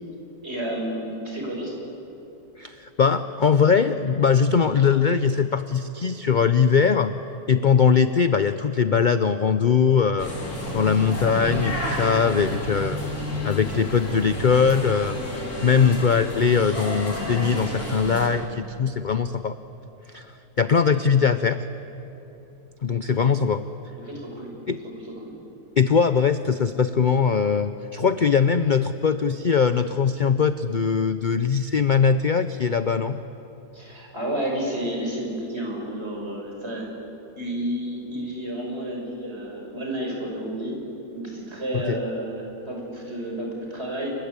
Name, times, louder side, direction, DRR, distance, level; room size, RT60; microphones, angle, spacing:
voice 1, 0.4-1.8 20.9-21.0 23.0-23.4 24.1-24.5 25.0-25.3 33.7-36.8 37.4-40.8 41.1-44.1, right 1 dB, 40° right, -1 dB, 6.3 m, -31 dB
voice 2, 2.6-7.1 7.5-10.3 10.7-13.0 13.4-15.2 15.6-19.6 20.1-20.3 20.6-21.6 22.8-23.6 24.7-24.8 25.8-33.2 41.7-42.0, left 6 dB, 50° left, 11 dB, 0.6 m, -21 dB
sound 1, 10.2-18.3, equal, 70° left, 4.4 m, -30 dB
29.0 x 24.0 x 8.3 m, 2.9 s
omnidirectional pair, 1.6 m